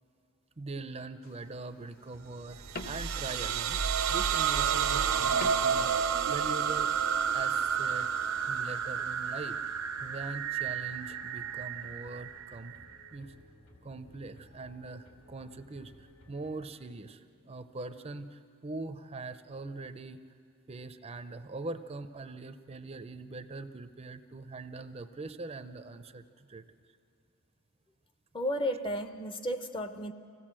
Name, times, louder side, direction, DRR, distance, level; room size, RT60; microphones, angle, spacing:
voice 1, 0.6-3.8 4.1-6.9 7.3-8.1 8.5-12.7 13.1-13.3 13.8-20.2 20.7-26.6, right 3 dB, 30° right, 10 dB, 0.6 m, -42 dB
sound 1, 1.2-6.9, left 2 dB, 45° left, 1.0 m, -49 dB
sound 2, 2.1-17.2, equal, 75° left, 3.1 m, -57 dB
sound 3, 2.5-13.1, right 7 dB, 75° right, 0.9 m, -30 dB
voice 2, 28.3-30.1, equal, 25° left, 9 dB, 0.7 m, -33 dB
25.0 x 16.5 x 7.5 m, 2.5 s
head